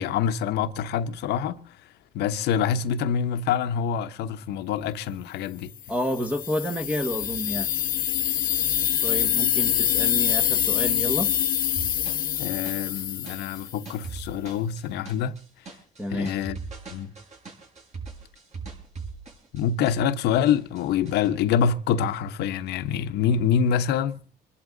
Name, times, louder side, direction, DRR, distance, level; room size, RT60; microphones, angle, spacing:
voice 1, 0.0-1.8 2.1-5.7 12.4-15.4 16.1-16.6 16.9-17.1 19.5-24.2, left 8 dB, 80° left, 1.1 m, -26 dB
voice 2, 5.9-7.7 9.0-11.3 16.0-16.3, equal, 10° right, 1.3 m, -29 dB
sound 1, 6.0-13.9, left 10 dB, 55° left, 1.1 m, -25 dB
sound 2, 11.8-20.2 20.4-21.3, right 4 dB, 40° right, 6.4 m, -40 dB
25.5 x 11.5 x 3.9 m
cardioid pair, 110°, 17 cm